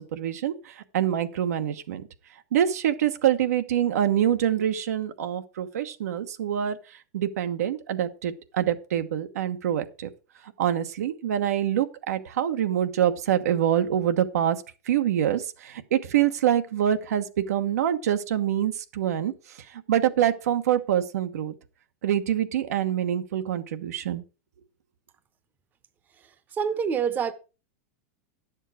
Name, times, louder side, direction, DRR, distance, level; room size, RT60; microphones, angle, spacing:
voice 1, 0.0-2.1 2.5-6.8 7.1-10.1 10.6-14.6 14.9-19.3 19.7-21.5 22.0-24.2, right 10 dB, 85° right, 1.1 m, -25 dB
voice 2, 26.2-27.3, right 7 dB, 20° right, 0.8 m, -27 dB
10.5 x 7.3 x 4.9 m
supercardioid pair, 145°, 8 cm